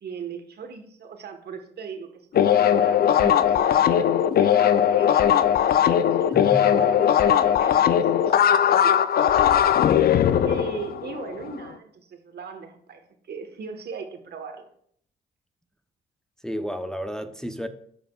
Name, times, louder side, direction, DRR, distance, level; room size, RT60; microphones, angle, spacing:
voice 1, 0.0-6.3 6.6-9.0 10.4-14.7, right 6 dB, 60° right, 1.3 m, -38 dB
sound 1, 2.3-11.5, left 9 dB, 55° left, 0.5 m, -19 dB
voice 2, 6.3-6.9 16.4-17.7, equal, 5° left, 0.7 m, -32 dB
14.0 x 4.9 x 2.4 m
supercardioid pair, 60°, 19 cm